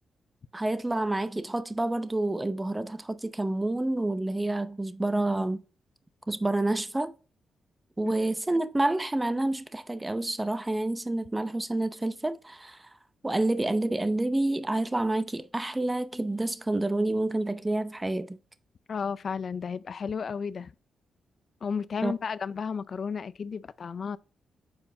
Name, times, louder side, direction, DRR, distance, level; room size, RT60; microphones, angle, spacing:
voice 1, 0.5-5.6 6.3-7.1 8.0-12.9 13.2-18.4 22.0-22.1, right 2 dB, 15° right, 0.7 m, -28 dB
voice 2, 18.9-20.7 21.6-24.2, left 6 dB, 55° left, 0.4 m, -33 dB
7.6 x 4.5 x 2.7 m
cardioid pair, 70°, 0 cm